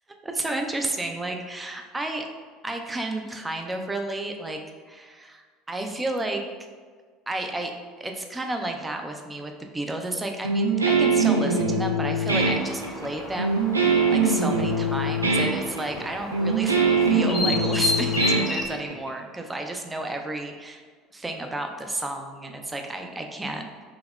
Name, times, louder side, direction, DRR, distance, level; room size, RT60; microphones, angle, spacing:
voice 1, 0.2-2.3 2.6-4.6 4.9-6.4 7.3-7.7 8.0-13.7 14.1-20.8 21.1-23.8, right 2 dB, 15° right, 4 dB, 0.4 m, -32 dB
Guitar, 10.4-19.1, right 3 dB, 90° right, 0.3 m, -23 dB
sound 1, 12.3-18.7, left 2 dB, 25° left, 0.7 m, -32 dB
3.9 x 2.8 x 2.3 m, 1.6 s
figure-of-eight pair, 65°, 0 cm